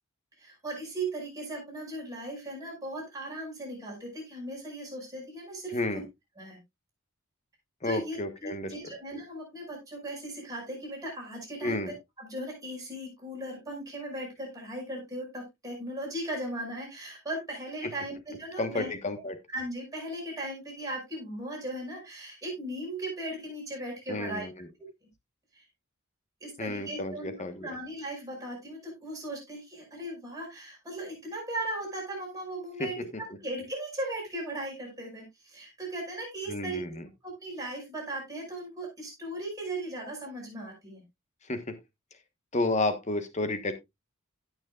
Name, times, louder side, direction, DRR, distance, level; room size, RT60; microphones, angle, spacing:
voice 1, 0.4-5.8 6.4-6.6 7.8-11.8 12.2-18.9 19.5-24.5 25.5-25.6 26.4-27.3 27.6-36.8 37.2-41.0, right 1 dB, 15° right, -3 dB, 5.5 m, -37 dB
voice 2, 5.7-6.0 7.8-8.9 11.6-11.9 18.6-19.4 24.1-24.7 26.6-27.8 32.8-33.1 36.5-37.1 41.4-41.7 42.5-43.7, left 2 dB, 30° left, 9 dB, 1.2 m, -31 dB
16.5 x 6.3 x 2.4 m, 0.21 s
head